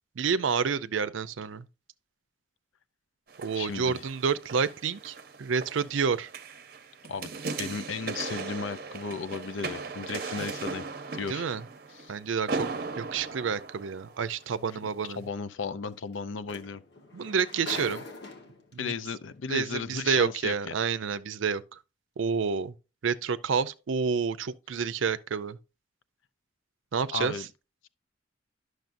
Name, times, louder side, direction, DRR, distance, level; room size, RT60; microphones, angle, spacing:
voice 1, 0.2-1.6 3.4-6.3 11.3-11.6 12.1-12.7 13.0-15.2 17.1-18.0 18.7-18.9 19.5-21.6 22.2-22.7 23.0-25.6 26.9-27.3, right 6 dB, 90° right, 0.5 m, -29 dB
sound 1, 3.3-14.5 15.1-15.2, right 4 dB, 50° right, 0.7 m, -38 dB
voice 2, 3.5-4.0 7.1-7.3 7.6-10.8 11.1-11.5 11.9-12.1 14.8-14.9 15.2-16.8 18.8-20.7 27.1-27.5, left 5 dB, 90° left, 0.5 m, -35 dB
sound 2, 14.3-14.4 16.1-16.2 16.5-18.7 19.7-19.8, left 3 dB, 60° left, 1.4 m, -41 dB
10.5 x 6.4 x 2.6 m
head